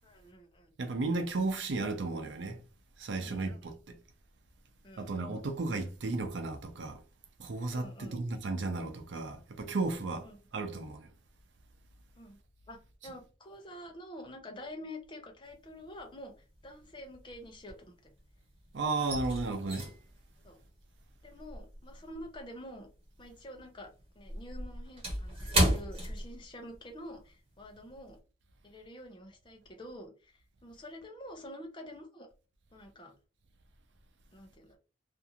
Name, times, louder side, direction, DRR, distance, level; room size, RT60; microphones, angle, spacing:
voice 1, 0.0-0.7 3.2-3.5 4.8-5.1 7.7-8.2 10.3-10.4 12.2-12.4 12.7-16.3 16.6-18.1 20.4-20.6 21.2-22.9 23.2-23.9 24.2-28.2 28.6-32.3 32.7-33.1 34.3-34.8, left 1 dB, 25° left, 0.6 m, -47 dB
voice 2, 0.8-2.6 3.0-4.0 5.0-7.0 7.4-11.1 18.7-19.9, right 3 dB, 90° right, 0.5 m, -34 dB
sound 1, 15.5-16.1 16.3-18.3 18.6-23.3 23.6-26.9 27.2-27.4 27.9-28.1, equal, 35° right, 1.2 m, -34 dB
2.5 x 2.4 x 2.8 m
head